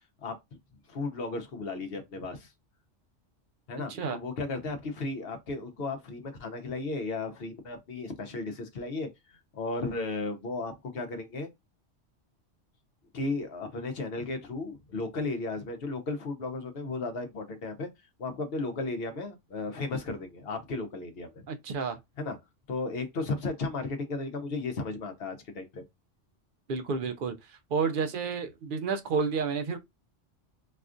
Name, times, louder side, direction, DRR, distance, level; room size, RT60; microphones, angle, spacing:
voice 1, 0.9-2.5 3.7-11.5 13.1-17.9 18.2-21.4 22.2-22.4 22.7-25.8, left 3 dB, 60° left, 0.9 m, -35 dB
voice 2, 21.5-22.0 26.7-29.8, right 5 dB, 60° right, 0.5 m, -30 dB
4.1 x 2.3 x 2.5 m
omnidirectional pair, 1.2 m